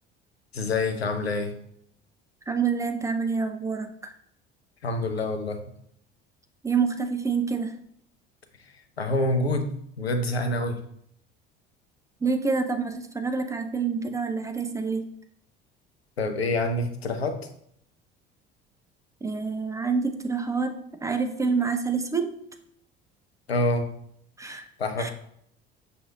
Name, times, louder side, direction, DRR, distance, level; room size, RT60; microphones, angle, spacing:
voice 1, 0.5-1.5 4.8-5.6 8.6-9.7 10.0-10.8 16.2-17.4 23.5-23.9 24.8-25.1, left 2 dB, 90° left, 7 dB, 0.5 m, -26 dB
voice 2, 2.5-4.1 6.6-7.8 12.2-15.1 19.2-20.7 21.0-22.3 24.4-24.7 25.0-25.1, right 5 dB, 10° right, 6 dB, 0.3 m, -27 dB
6.0 x 2.5 x 2.4 m, 0.68 s
figure-of-eight pair, 60°, 30 cm